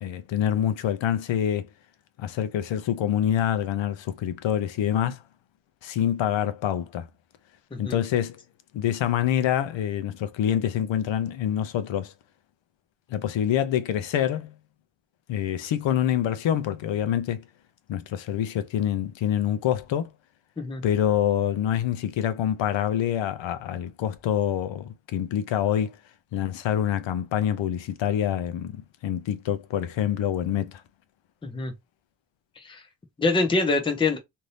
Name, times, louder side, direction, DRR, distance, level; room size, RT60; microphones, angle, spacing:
voice 1, 0.0-1.7 2.2-5.2 5.8-7.1 7.8-8.4 8.7-12.1 13.1-14.6 15.3-17.4 17.9-20.1 20.8-26.0 26.3-30.8, left 10 dB, 75° left, 0.6 m, -26 dB
voice 2, 31.4-31.7 32.6-32.8 33.2-34.2, left 3 dB, 10° left, 0.5 m, -25 dB
2.7 x 2.6 x 3.2 m
wide cardioid pair, 180°, 45 cm